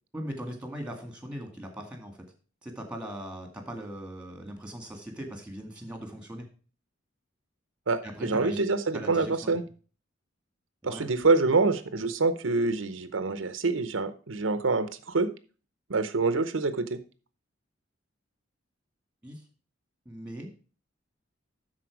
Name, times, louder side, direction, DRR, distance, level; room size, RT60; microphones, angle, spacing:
voice 1, 0.1-2.2 2.6-6.5 8.0-8.6 8.9-9.5 10.8-11.1 19.2-19.4 20.1-20.5, equal, 5° right, 4 dB, 2.0 m, -39 dB
voice 2, 7.9-9.6 10.8-15.3 15.9-17.0, right 3 dB, 80° right, 11 dB, 0.8 m, -26 dB
12.0 x 4.5 x 4.6 m, 0.37 s
head